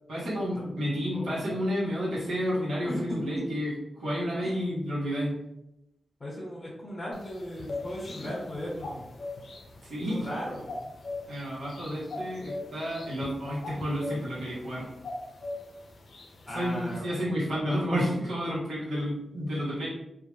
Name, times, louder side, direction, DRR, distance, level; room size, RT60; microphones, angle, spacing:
voice 1, 0.1-3.7 4.0-5.3 8.2-8.3 9.9-10.3 11.3-14.8 16.5-19.9, equal, 85° right, -8 dB, 0.9 m, -30 dB
voice 2, 1.1-1.4 2.9-3.2 4.4-4.7 6.2-9.1 10.1-10.9 16.5-17.4, left 1 dB, 40° left, -4 dB, 0.9 m, -37 dB
sound 1, 7.1-17.0, left 2 dB, 70° left, 0.4 m, -41 dB
2.3 x 2.0 x 3.0 m, 0.87 s
cardioid pair, 45°, 0 cm